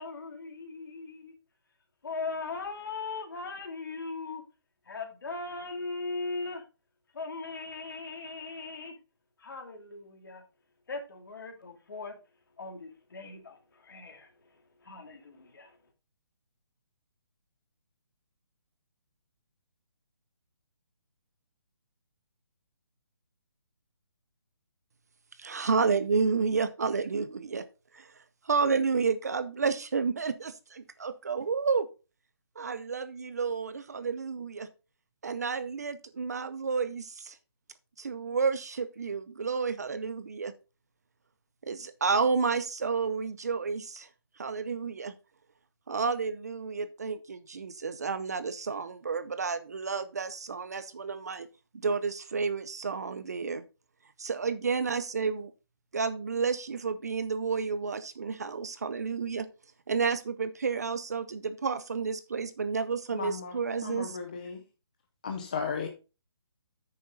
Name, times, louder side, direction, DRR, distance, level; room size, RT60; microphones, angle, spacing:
voice 1, 0.0-1.3 2.0-4.4 4.9-6.6 7.1-8.9 9.4-10.4 10.9-12.2 12.6-14.3 14.8-15.8, left 3 dB, 50° left, 2.6 m, -39 dB
voice 2, 25.4-27.6 27.9-28.1 28.4-31.9 32.6-34.7 35.2-37.4 38.0-40.5 41.6-44.1 44.4-45.1 45.9-51.5 51.7-53.6 54.2-55.5 55.9-59.5 59.9-64.2, right 5 dB, 40° right, 0.6 m, -31 dB
voice 3, 63.1-63.5 63.8-64.6 65.2-65.9, left 6 dB, 20° left, 0.5 m, -35 dB
9.5 x 6.7 x 3.9 m
hypercardioid pair, 175°, 14 cm